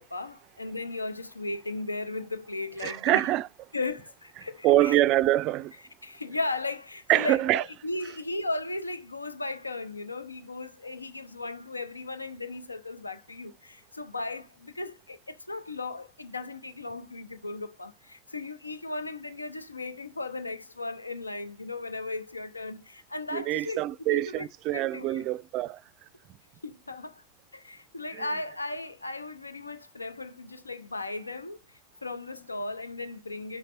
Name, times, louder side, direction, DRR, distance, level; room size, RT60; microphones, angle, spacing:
voice 1, 0.0-3.2 3.7-5.0 6.0-23.8 24.1-24.5 24.7-25.2 26.6-27.2 27.5-33.6, left 2 dB, 80° left, 0.6 m, -36 dB
voice 2, 2.8-3.5 4.6-5.7 7.1-7.6 23.3-25.8 28.2-28.3, right 15 dB, 40° right, 0.3 m, -25 dB
7.0 x 5.8 x 4.2 m
figure-of-eight pair, 90°, 0 cm